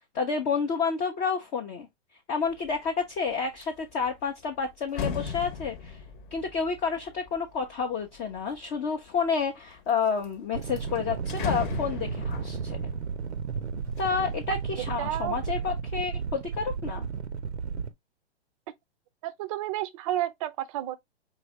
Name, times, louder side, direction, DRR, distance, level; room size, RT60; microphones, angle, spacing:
voice 1, 0.1-1.9 2.3-6.0 6.3-12.8 14.0-17.1, left 5 dB, 20° left, 0.5 m, -30 dB
sound 1, 2.5-2.9 3.3-8.6 9.2-9.9 10.2-10.3 10.6-14.5 14.9-15.5, left 6 dB, 45° left, 0.9 m, -38 dB
sound 2, 10.5-17.9, right 6 dB, 80° right, 0.7 m, -33 dB
voice 2, 15.0-15.4 19.2-20.9, right 13 dB, 30° right, 0.5 m, -31 dB
4.7 x 2.7 x 3.0 m
figure-of-eight pair, 120°, 33 cm